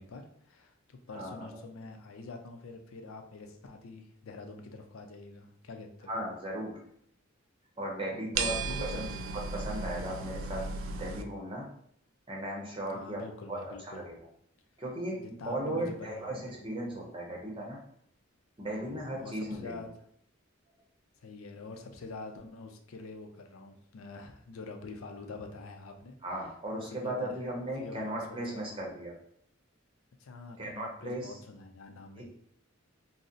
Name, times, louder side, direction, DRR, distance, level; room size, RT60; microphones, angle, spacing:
voice 1, 0.0-6.1 8.1-9.1 12.9-14.0 15.2-16.5 18.7-19.9 21.2-26.5 26.8-27.4 27.7-28.8 30.2-32.3, left 3 dB, 75° left, 5 dB, 0.4 m, -46 dB
voice 2, 6.1-6.7 7.8-9.0 9.5-11.7 12.3-13.2 13.5-14.2 14.8-15.2 15.5-17.8 18.6-19.8 26.2-29.1 30.6-31.3 32.2-32.3, right 1 dB, 25° right, -2 dB, 0.8 m, -36 dB
sound 1, 8.3-11.2, right 4 dB, 65° right, 0.3 m, -35 dB
2.6 x 2.0 x 3.7 m, 0.68 s
head